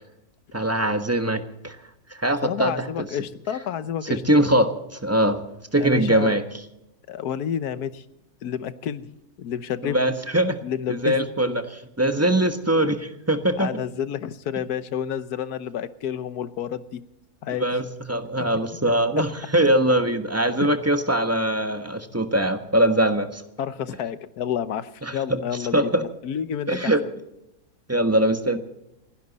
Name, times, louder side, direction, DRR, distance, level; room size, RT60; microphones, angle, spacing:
voice 1, 0.5-1.8 2.1-3.1 4.0-5.4 5.7-6.5 9.8-10.6 10.9-13.7 17.6-23.4 25.0-25.4 25.7-26.0 26.7-27.0 27.9-28.6, right 1 dB, 10° right, 7 dB, 1.2 m, -22 dB
voice 2, 2.2-4.2 5.8-6.3 7.1-8.0 8.4-9.1 9.4-10.0 10.6-11.2 13.6-17.0 17.4-17.7 18.4-18.5 20.6-20.7 23.6-27.1, left 9 dB, 80° left, 14 dB, 1.4 m, -30 dB
28.5 x 11.0 x 4.2 m, 0.87 s
omnidirectional pair, 1.6 m